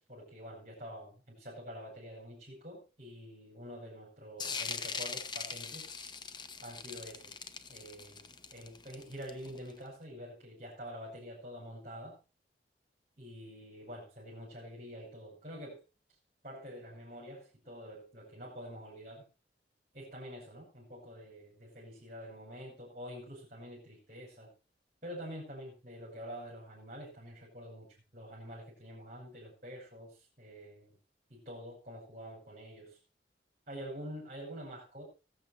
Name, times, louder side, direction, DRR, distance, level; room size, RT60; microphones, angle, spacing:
voice 1, 0.0-5.9 6.6-7.3 7.7-12.2 13.2-15.8 16.4-19.3 19.9-24.5 25.0-31.0 31.3-33.0 33.7-35.1, equal, 40° right, -5 dB, 5.5 m, -47 dB
sound 1, 4.4-9.7, left 5 dB, 25° left, 0.9 m, -41 dB
20.5 x 7.7 x 4.2 m, 0.33 s
head